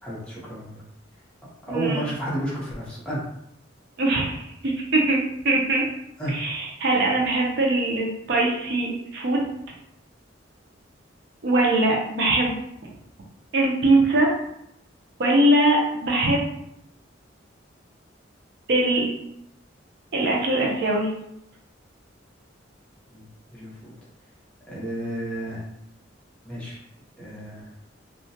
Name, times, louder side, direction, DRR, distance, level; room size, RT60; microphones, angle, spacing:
voice 1, 0.0-0.7 1.6-3.2 6.2-6.3 23.1-23.3 23.5-23.9 24.7-25.6 26.4-26.8 27.2-27.7, right 1 dB, 5° left, -8 dB, 0.7 m, -31 dB
voice 2, 1.7-2.1 4.0-5.2 5.4-5.9 6.3-9.4 11.4-12.6 13.5-14.3 15.2-16.4 18.7-19.1 20.1-21.1, right 2 dB, 60° right, -2 dB, 0.5 m, -21 dB
2.3 x 2.2 x 2.7 m, 0.77 s
head